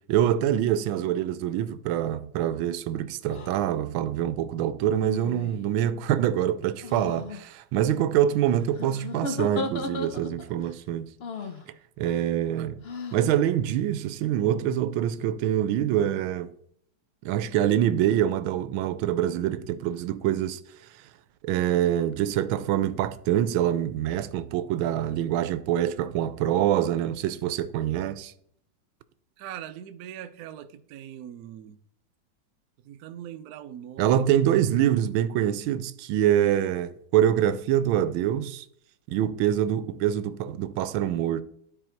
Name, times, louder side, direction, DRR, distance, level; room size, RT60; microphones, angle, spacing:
voice 1, 0.0-11.1 12.0-12.8 13.1-16.5 17.2-20.6 21.4-28.3 34.0-38.6 39.1-41.4, right 11 dB, 85° right, 1.4 m, -25 dB
sound 1, 3.3-3.5 4.8-5.7 6.8-7.4 8.7-10.5 11.2-11.6 12.8-13.3, left 3 dB, 55° left, 0.6 m, -35 dB
voice 2, 29.4-31.8 32.8-34.2, right 10 dB, 70° right, 0.9 m, -41 dB
12.5 x 4.1 x 4.5 m
omnidirectional pair, 2.2 m